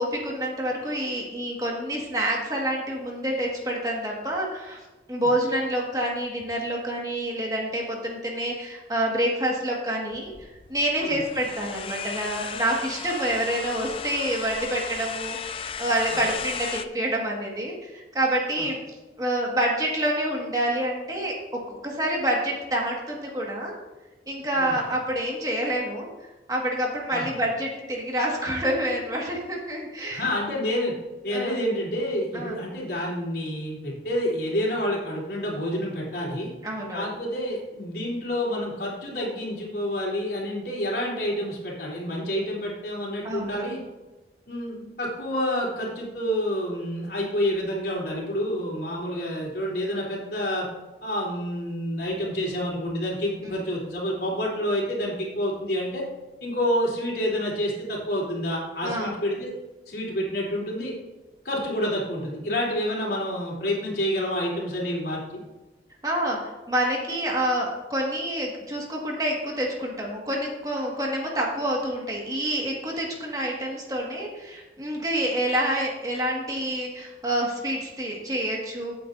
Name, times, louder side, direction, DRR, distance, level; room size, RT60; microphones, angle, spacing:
voice 1, 0.0-4.8 5.1-10.3 10.7-18.8 19.2-21.4 21.7-23.7 24.3-26.1 26.5-30.3 31.3-31.6 32.3-32.6 36.6-37.1 43.2-43.7 58.8-59.1 66.0-79.0, right 1 dB, 20° right, -2 dB, 1.7 m, -27 dB
sound 1, 10.1-16.9, left 7 dB, 30° left, 0.4 m, -36 dB
voice 2, 30.1-30.9 31.2-36.5 36.9-43.8 44.5-50.7 51.0-56.1 56.4-59.5 59.9-60.9 61.4-65.4, equal, 65° left, -3 dB, 3.6 m, -28 dB
16.0 x 8.7 x 2.7 m, 1.1 s
head